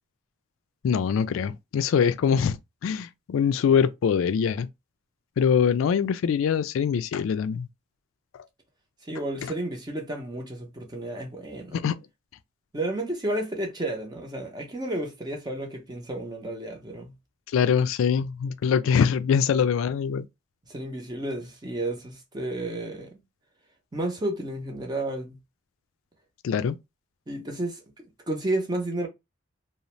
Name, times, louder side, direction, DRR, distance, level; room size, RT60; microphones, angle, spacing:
voice 1, 0.8-2.6 2.8-4.7 5.4-7.7 11.7-12.0 17.5-20.3 26.4-26.8, left 7 dB, 75° left, 0.3 m, -23 dB
voice 2, 9.0-11.8 12.7-17.2 20.7-23.2 23.9-25.4 27.3-29.1, right 1 dB, 20° right, 0.6 m, -32 dB
2.6 x 2.0 x 3.0 m
head